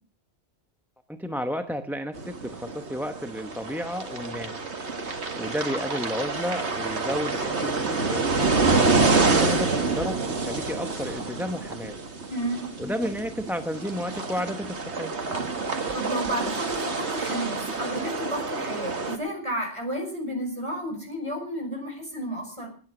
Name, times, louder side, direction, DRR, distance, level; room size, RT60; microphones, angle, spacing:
voice 1, 1.1-4.6 5.4-8.3 9.1-12.0 12.8-15.2, equal, ahead, 6 dB, 0.8 m, -32 dB
sound 1, 2.2-19.2, right 3 dB, 75° right, 2.1 m, -27 dB
voice 2, 12.3-12.7 15.9-22.7, right 1 dB, 25° right, 2 dB, 5.7 m, -32 dB
19.5 x 9.4 x 6.1 m, 0.43 s
omnidirectional pair, 1.1 m